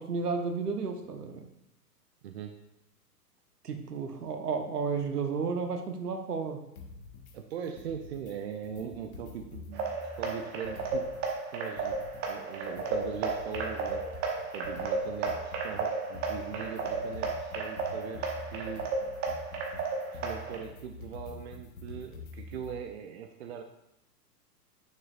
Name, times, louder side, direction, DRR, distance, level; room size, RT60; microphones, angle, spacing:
voice 1, 0.0-1.4 3.6-6.6, right 5 dB, 70° right, 6 dB, 1.1 m, -32 dB
voice 2, 2.2-2.6 7.3-11.1 11.5-12.0 12.3-14.2 14.5-18.9 19.7-19.8 20.1-23.6, right 8 dB, 45° right, 6 dB, 0.6 m, -41 dB
sound 1, 6.8-7.3 7.6-8.3 8.6-11.3 11.6-22.8, left 3 dB, 60° left, 1.5 m, -46 dB
sound 2, 9.7-20.6, right 4 dB, 20° right, 0.9 m, -34 dB
9.7 x 6.6 x 2.4 m, 0.85 s
figure-of-eight pair, 110°, 48 cm